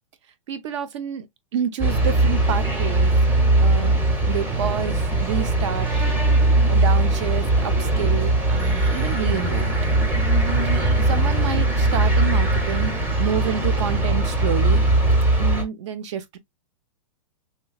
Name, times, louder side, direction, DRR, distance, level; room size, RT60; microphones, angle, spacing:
voice 1, 0.5-1.3 1.5-3.1 3.6-4.0 4.3-5.9 6.7-9.7 11.1-14.8 15.4-16.4, right 8 dB, 60° right, 0.7 m, -28 dB
sound 1, 1.8-15.6, right 2 dB, 10° right, 0.8 m, -20 dB
3.2 x 3.0 x 2.3 m
supercardioid pair, 160°, 17 cm